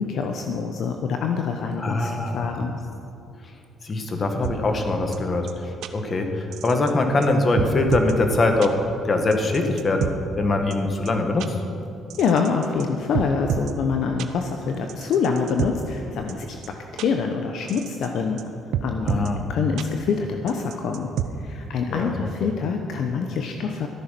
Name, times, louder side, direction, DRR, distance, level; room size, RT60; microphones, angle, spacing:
voice 1, 0.0-2.8 12.2-16.6 16.9-18.4 18.8-21.1 21.4-23.9, left 5 dB, 70° left, 4 dB, 0.9 m, -25 dB
voice 2, 1.8-2.6 3.8-8.8 9.0-10.1 10.4-11.5 19.1-19.4 21.9-22.3, left 2 dB, 40° left, 4 dB, 1.9 m, -23 dB
sound 1, 4.4-4.5 5.1-5.2 5.5-5.6 5.8-5.9 6.5-6.9 7.2-7.3 7.6-8.1 8.6-8.7 9.3-10.1 10.7-10.8 11.1-11.2 11.4-11.5 12.1-12.8 13.1-13.7 14.2-14.3 14.9-15.7 16.3-16.4 16.6-16.7 17.0-17.1 17.7-18.1 18.4-18.5 18.7-19.3 19.8-19.9 20.5-21.3, right 10 dB, 75° right, 0.7 m, -28 dB
13.5 x 9.8 x 6.0 m, 2.8 s
supercardioid pair, 65°, 0 cm